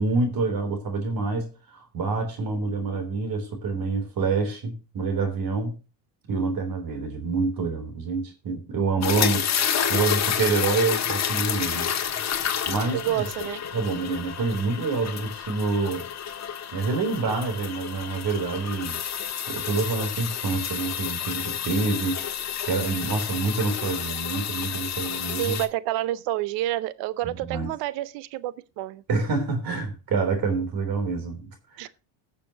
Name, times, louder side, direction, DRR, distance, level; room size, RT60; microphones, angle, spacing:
voice 1, 0.0-5.7 6.3-9.5 9.9-11.9 12.7-13.2 13.7-16.1 16.7-19.0 19.5-22.2 22.6-25.5 27.2-27.7 29.1-31.9, right 4 dB, 50° right, 3.5 m, -27 dB
sound 1, 9.0-25.7, left 8 dB, 35° left, 1.7 m, -30 dB
voice 2, 12.9-13.6 25.4-29.0 31.8-31.9, right 14 dB, 70° right, 0.8 m, -29 dB
19.5 x 6.9 x 2.8 m
supercardioid pair, 95°, 45 cm